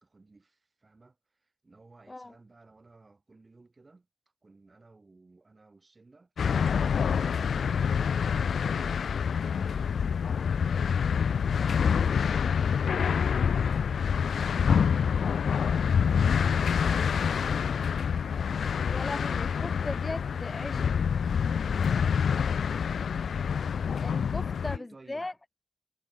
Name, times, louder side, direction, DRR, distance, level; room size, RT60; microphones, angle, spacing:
voice 1, 0.0-4.1 4.4-9.1 9.5-13.9 20.3-21.1 21.7-22.8 24.4-25.3, right 3 dB, 30° right, 5.9 m, -57 dB
sound 1, 6.4-24.8, left 7 dB, 85° left, 0.4 m, -27 dB
voice 2, 18.9-20.7 24.0-25.3, left 2 dB, 20° left, 1.2 m, -38 dB
wide cardioid pair, 135°, 0 cm